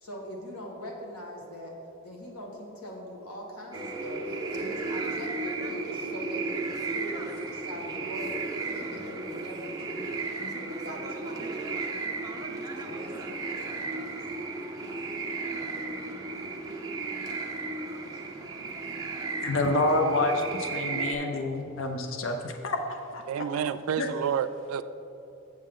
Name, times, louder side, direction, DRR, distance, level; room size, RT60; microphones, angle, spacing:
voice 1, 0.0-1.7 2.0-11.9 12.8-14.1 14.4-14.5, equal, 90° left, -1 dB, 1.5 m, -42 dB
sound 1, 3.7-21.1, right 3 dB, 15° right, 0.7 m, -34 dB
voice 2, 19.4-23.5 24.0-24.1, left 2 dB, 60° left, 5 dB, 0.6 m, -28 dB
voice 3, 23.3-24.8, right 8 dB, 70° right, 14 dB, 0.3 m, -29 dB
7.5 x 7.4 x 3.7 m, 2.9 s
head